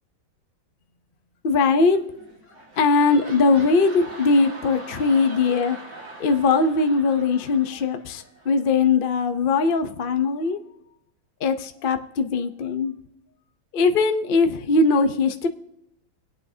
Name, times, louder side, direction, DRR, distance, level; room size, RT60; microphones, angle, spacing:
voice 1, 1.4-2.0 2.8-5.8 6.2-10.6 11.4-13.0 13.7-15.5, left 4 dB, 75° left, 0.4 m, -20 dB
sound 1, 2.1-8.7 9.2-9.3, right 2 dB, 70° right, 2.9 m, -42 dB
22.5 x 8.9 x 2.8 m
omnidirectional pair, 2.1 m